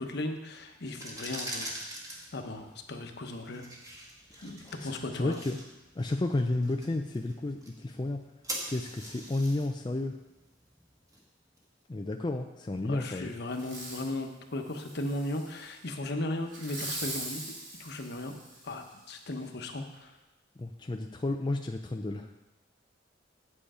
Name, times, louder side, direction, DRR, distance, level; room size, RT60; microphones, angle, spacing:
voice 1, 0.0-1.7 2.3-3.6 4.4-5.4 12.8-17.5 17.8-18.4 18.6-20.1, left 1 dB, 60° left, 5 dB, 1.0 m, -36 dB
sound 1, 0.8-11.6, right 1 dB, 20° right, 1.6 m, -44 dB
voice 2, 4.3-5.6 6.0-8.2 8.7-10.2 11.9-13.3 20.6-22.3, left 2 dB, 25° left, 4 dB, 0.4 m, -32 dB
Fireworks, 13.5-14.1 14.7-15.7 16.5-18.9 19.4-19.5, right 2 dB, 75° right, 3.1 m, -41 dB
8.5 x 7.9 x 4.9 m, 1.0 s
head